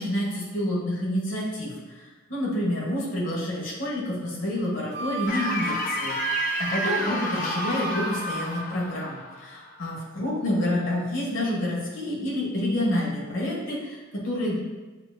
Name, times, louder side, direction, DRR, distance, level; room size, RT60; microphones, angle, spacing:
voice 1, 0.0-14.5, left 1 dB, 75° left, -4 dB, 1.4 m, -28 dB
Wind instrument woodwind instrument, 4.9-8.7, right 8 dB, 50° right, 0.3 m, -32 dB
sound 1, 5.3-10.3, left 3 dB, 40° left, 0.4 m, -32 dB
7.2 x 2.7 x 2.4 m, 1.2 s
head